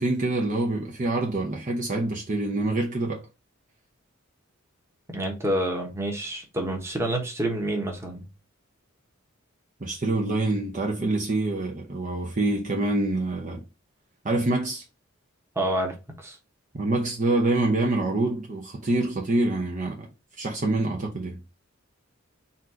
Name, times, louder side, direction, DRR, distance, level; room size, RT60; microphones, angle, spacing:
voice 1, 0.0-3.2 9.8-13.6 14.2-14.8 16.7-20.1 20.4-21.4, right 2 dB, 35° right, 0.7 m, -26 dB
voice 2, 5.1-8.3 15.5-16.4, right 1 dB, 15° right, 1.1 m, -28 dB
4.2 x 2.5 x 4.2 m
head